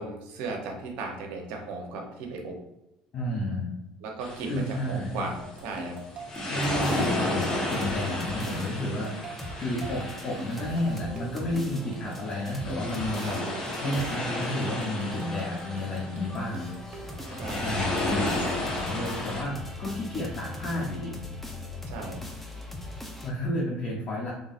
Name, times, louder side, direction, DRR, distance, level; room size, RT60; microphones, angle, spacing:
voice 1, 0.0-2.6 4.0-6.0 13.2-13.4 17.4-17.7 21.9-22.2, right 3 dB, 75° right, 2 dB, 0.9 m, -36 dB
voice 2, 3.1-3.7 4.5-5.3 6.5-9.1 9.6-13.5 13.8-16.7 17.6-18.3 18.8-21.2 23.2-24.3, left 1 dB, 45° left, -4 dB, 1.0 m, -31 dB
sound 1, 4.2-19.4, left 1 dB, 25° left, 1.3 m, -33 dB
sound 2, 5.4-17.7, right 1 dB, 40° right, 1.1 m, -43 dB
sound 3, 6.5-23.3, left 2 dB, 5° left, 0.7 m, -41 dB
3.8 x 3.3 x 2.5 m, 0.94 s
supercardioid pair, 100°, 3 cm